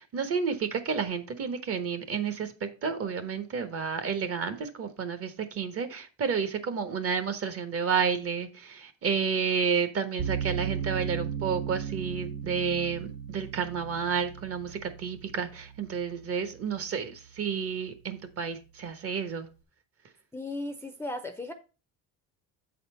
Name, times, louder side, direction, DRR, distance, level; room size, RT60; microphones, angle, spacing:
voice 1, 0.1-19.5, right 6 dB, 40° right, 1.2 m, -31 dB
sound 1, 10.2-17.3, right 7 dB, 70° right, 2.1 m, -36 dB
voice 2, 20.3-21.5, left 2 dB, 5° left, 0.5 m, -36 dB
7.7 x 4.2 x 5.5 m
cardioid pair, 130°, 36 cm